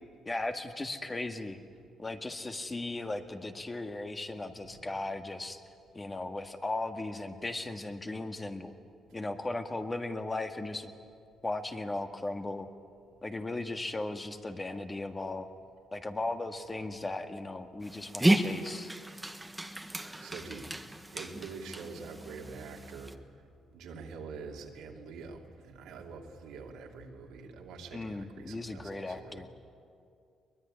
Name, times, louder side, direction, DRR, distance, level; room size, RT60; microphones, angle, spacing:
voice 1, 0.3-1.6 2.0-5.6 5.9-8.7 9.1-10.9 11.4-12.7 13.2-15.5 15.9-18.9 27.9-29.5, left 2 dB, 20° left, 6 dB, 1.9 m, -37 dB
Dog, 17.8-23.2, right 1 dB, 10° right, 1.4 m, -33 dB
voice 2, 20.2-20.7 21.1-23.1 23.7-29.5, right 5 dB, 90° right, 0 dB, 2.9 m, -45 dB
23.0 x 21.0 x 9.9 m, 2.3 s
cardioid pair, 90°, 0 cm